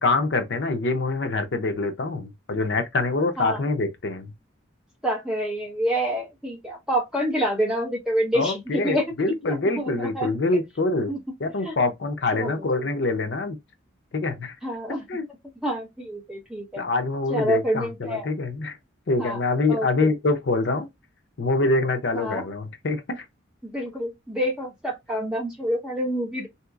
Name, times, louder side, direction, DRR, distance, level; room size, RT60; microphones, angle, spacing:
voice 1, 0.0-4.3 8.3-11.1 11.4-13.6 14.1-14.6 15.1-15.2 16.8-18.8 19.1-20.9 21.4-23.3, left 3 dB, 60° left, 0.5 m, -25 dB
voice 2, 5.0-9.0 9.5-10.3 11.1-11.2 11.6-11.7 12.3-12.6 14.6-15.0 15.6-16.8 17.3-18.3 19.2-19.4 19.7-19.9 22.1-22.4 23.6-26.5, equal, 5° right, 0.9 m, -27 dB
3.7 x 2.8 x 2.3 m
head